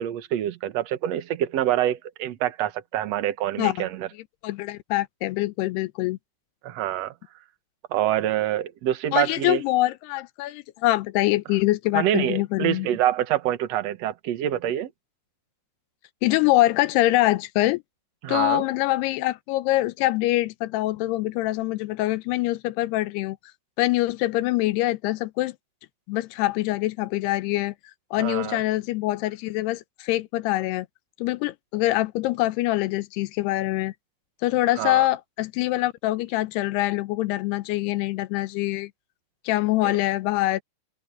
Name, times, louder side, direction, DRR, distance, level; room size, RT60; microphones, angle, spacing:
voice 1, 0.0-4.1 6.6-7.1 7.9-9.6 11.9-14.9 18.2-18.6 28.2-28.6 34.8-35.1 39.8-39.9, right 12 dB, 65° right, 1.6 m, -26 dB
voice 2, 4.4-6.2 9.1-12.9 16.2-17.8 18.3-23.4 23.8-25.6 26.1-27.7 28.1-30.9 31.2-33.9 34.4-38.9 39.5-40.6, left 17 dB, 85° left, 2.8 m, -24 dB
omnidirectional pair, 4.7 m